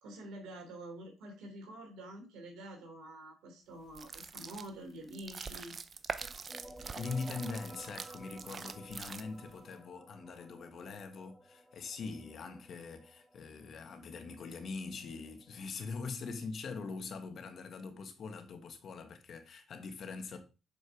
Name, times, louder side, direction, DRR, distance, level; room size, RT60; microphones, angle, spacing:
voice 1, 0.0-5.7, right 1 dB, 80° right, 3.2 m, -47 dB
sound 1, 3.9-9.6, right 5 dB, 45° right, 0.8 m, -44 dB
sound 2, 6.2-15.6, right 1 dB, 5° right, 1.2 m, -55 dB
voice 2, 7.0-20.4, left 4 dB, 60° left, 1.6 m, -42 dB
6.9 x 5.4 x 4.8 m
supercardioid pair, 60°, 0 cm